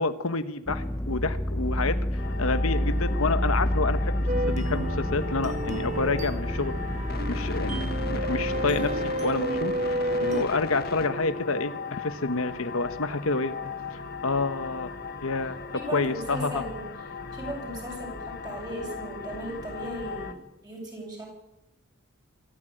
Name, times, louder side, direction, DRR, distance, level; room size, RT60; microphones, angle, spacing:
voice 1, 0.0-2.0 2.4-6.7 7.3-7.8 8.1-13.5 13.9-14.9 15.2-15.6 15.9-16.6, left 3 dB, 75° left, 11 dB, 1.3 m, -28 dB
sound 1, 0.7-9.1, equal, 10° left, 0.9 m, -29 dB
sound 2, 2.2-20.3, left 4 dB, 45° left, 1.7 m, -37 dB
sound 3, 4.3-10.4, right 1 dB, 35° right, 1.3 m, -31 dB
voice 2, 15.7-16.8 17.3-20.4 20.6-21.3, right 1 dB, 20° right, -1 dB, 7.6 m, -37 dB
24.5 x 14.0 x 9.1 m, 0.96 s
head